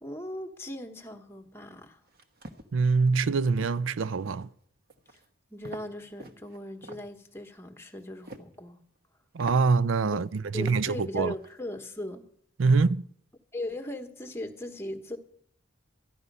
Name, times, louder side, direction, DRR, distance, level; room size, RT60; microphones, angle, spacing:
voice 1, 0.0-2.0 5.1-5.2 5.5-8.8 10.5-12.2 13.5-15.2, left 1 dB, 10° left, 1.2 m, -38 dB
sound 1, 2.1-2.7 3.2-3.3 3.6-3.9 4.2-4.5 4.9-5.3 5.6-5.9 6.2-7.0 8.0-8.5 9.0-9.1 9.4-9.6 10.2-10.3 10.6-10.8 11.2-11.5, right 1 dB, 50° right, 1.2 m, -45 dB
voice 2, 2.7-4.5 9.3-11.3 12.6-13.1, right 4 dB, 70° right, 0.4 m, -24 dB
14.0 x 11.5 x 5.4 m
head